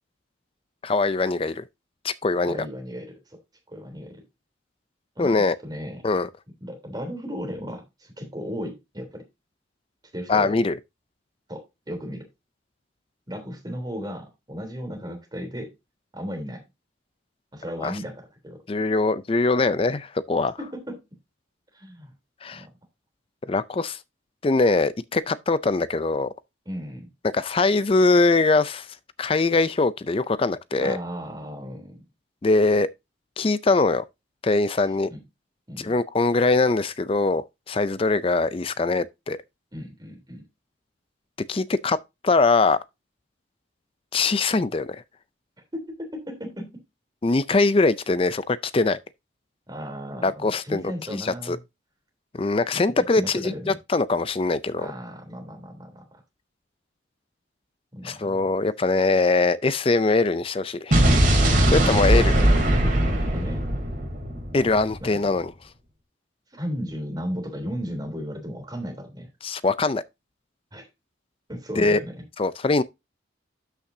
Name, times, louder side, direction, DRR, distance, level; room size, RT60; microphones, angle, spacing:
voice 1, 0.8-1.6 2.0-2.6 5.2-5.6 6.0-6.3 10.3-10.8 17.8-17.9 18.7-20.5 22.4-22.6 23.5-24.0 24.4-26.3 27.3-28.9 29.2-31.0 32.4-32.9 33.4-34.0 34.4-35.1 35.8-39.4 41.5-42.0 42.2-42.8 44.1-45.0 47.2-49.0 50.2-51.6 52.3-54.9 58.0-61.0 61.7-62.3 64.5-65.5 69.4-70.0 71.8-72.0 72.4-72.8, left 3 dB, 30° left, 0.4 m, -22 dB
voice 2, 2.4-3.4 3.7-4.2 5.2-5.3 5.6-6.0 6.6-9.2 10.1-10.5 11.5-12.3 13.3-15.7 16.1-16.6 17.5-18.6 20.6-21.0 21.7-22.1 22.5-22.7 26.7-27.1 30.8-32.0 35.1-35.2 35.7-35.9 39.7-40.4 45.7-46.8 49.7-51.6 53.2-53.8 54.8-56.2 57.9-58.5 61.7-62.6 63.3-63.6 65.0-65.4 66.5-69.3 70.7-70.9 71.5-72.1, equal, 20° right, 3.3 m, -35 dB
Explosion, 60.9-65.0, right 1 dB, 45° right, 3.2 m, -20 dB
12.5 x 5.8 x 2.7 m
head